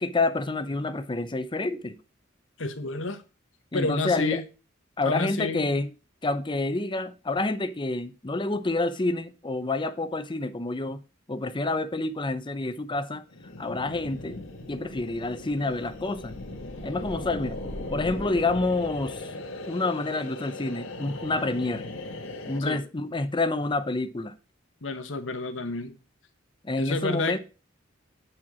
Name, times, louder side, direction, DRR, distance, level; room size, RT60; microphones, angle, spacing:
voice 1, 0.0-2.0 3.7-4.4 5.0-5.9 6.2-11.0 11.3-13.2 13.6-14.4 14.7-16.3 16.8-17.6 17.9-19.3 19.7-21.9 22.5-24.3 26.6-27.4, left 2 dB, 25° left, 0.7 m, -28 dB
voice 2, 2.6-3.2 3.7-4.4 5.0-5.8 22.6-22.8 24.8-26.0 26.8-27.4, left 3 dB, 70° left, 1.2 m, -30 dB
sound 1, 13.3-22.6, left 2 dB, 85° left, 1.6 m, -38 dB
8.7 x 4.5 x 6.1 m
head